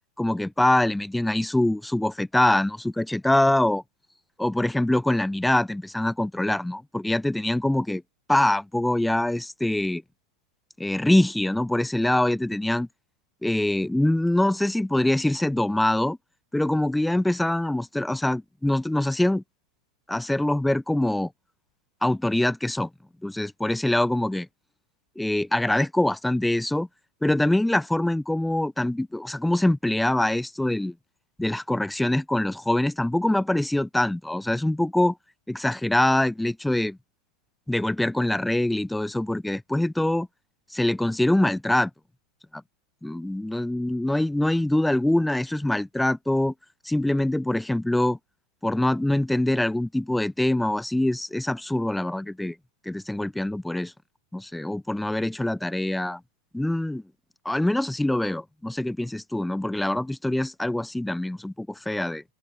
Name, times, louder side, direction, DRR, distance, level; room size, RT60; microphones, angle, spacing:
voice 1, 0.2-3.8 4.4-8.0 8.3-10.0 10.8-12.9 13.4-16.2 16.5-19.4 20.1-21.3 22.0-22.9 23.2-24.5 25.2-26.9 27.2-30.9 31.4-35.1 35.5-37.0 37.7-40.3 40.7-41.9 43.0-46.5 46.8-48.2 48.6-52.5 52.9-53.9 54.3-56.2 56.5-57.0 57.4-62.2, left 1 dB, 5° left, 0.6 m, -24 dB
open air
figure-of-eight pair, 90°, 0 cm